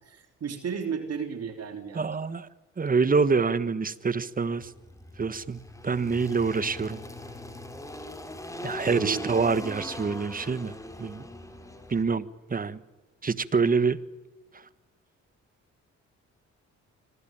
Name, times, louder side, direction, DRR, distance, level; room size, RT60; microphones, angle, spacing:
voice 1, 0.0-2.2 8.8-9.4, right 6 dB, 55° right, 6 dB, 3.4 m, -34 dB
voice 2, 1.9-2.5 2.8-4.7 5.2-7.0 8.6-10.7 11.0-11.2 11.9-12.8 13.2-14.0 14.5-14.6, right 5 dB, 30° right, 15 dB, 1.4 m, -26 dB
Engine, 4.6-12.0, left 1 dB, 10° left, 3.9 m, -40 dB
26.0 x 20.0 x 9.0 m, 1.1 s
cardioid pair, 90°, 30 cm